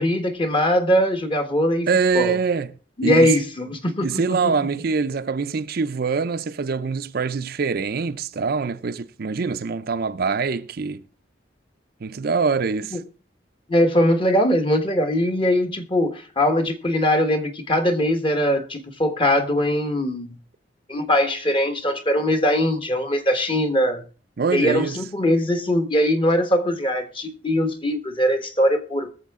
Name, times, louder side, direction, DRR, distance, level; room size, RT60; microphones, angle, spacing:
voice 1, 0.0-1.9 2.1-2.4 3.0-4.2 12.9-13.0 13.7-20.4 20.9-24.0 24.5-29.1, equal, 30° left, 1.3 m, -21 dB
voice 2, 1.9-2.7 3.0-3.3 4.0-11.0 12.0-13.0 24.4-25.0, right 5 dB, 55° right, 0.5 m, -24 dB
21.0 x 7.1 x 3.6 m
head